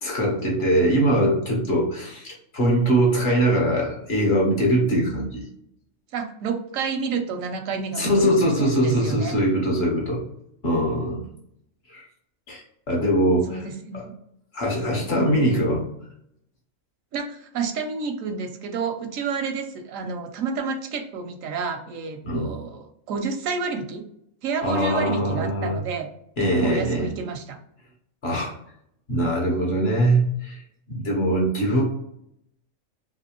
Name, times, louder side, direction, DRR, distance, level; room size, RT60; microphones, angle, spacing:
voice 1, 0.0-5.4 8.0-10.2 10.6-11.2 11.9-12.1 12.5-13.6 13.9-14.0 14.5-15.9 22.2-22.6 24.6-25.8 26.4-27.1 28.2-28.5 29.1-30.6 30.9-31.8, right 1 dB, 55° left, -2 dB, 1.2 m, -22 dB
voice 2, 6.1-9.3 13.5-14.1 17.1-24.0 24.4-26.1 26.6-27.6, right 5 dB, 80° right, 5 dB, 1.0 m, -30 dB
3.3 x 2.7 x 2.9 m, 0.74 s
omnidirectional pair, 1.4 m